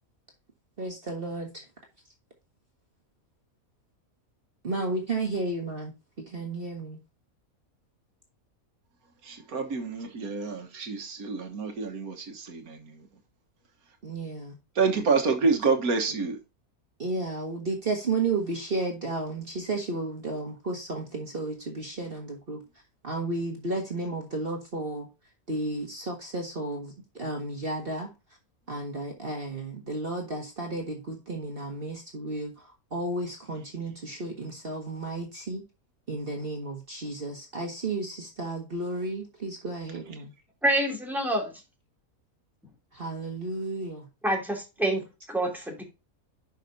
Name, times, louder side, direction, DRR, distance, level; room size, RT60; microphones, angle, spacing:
voice 1, 0.8-1.6 4.6-5.9 6.3-7.0 14.0-14.5 17.0-22.6 23.0-25.1 25.5-28.1 28.7-32.5 32.9-35.6 36.1-40.3 42.9-44.0, right 2 dB, 40° right, 1.8 m, -33 dB
voice 2, 9.2-13.1 14.7-16.4 40.1-40.3, right 4 dB, 80° right, 1.7 m, -28 dB
voice 3, 40.6-41.5 44.2-45.8, right 1 dB, ahead, 2.8 m, -27 dB
11.0 x 5.7 x 2.7 m
omnidirectional pair, 1.5 m